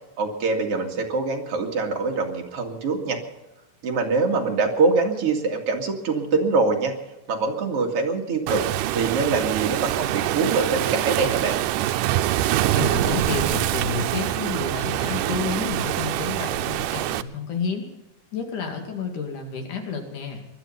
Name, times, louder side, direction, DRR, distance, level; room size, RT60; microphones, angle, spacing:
voice 1, 0.2-3.2 3.8-7.0 7.3-8.6 8.9-11.6, right 4 dB, 50° right, 2 dB, 3.0 m, -24 dB
Waves surf, 8.5-17.2, right 14 dB, 85° right, 2.3 m, -25 dB
voice 2, 12.7-17.9 18.3-20.5, left 5 dB, 70° left, 3 dB, 3.8 m, -30 dB
21.0 x 12.0 x 5.5 m, 1.0 s
omnidirectional pair, 3.7 m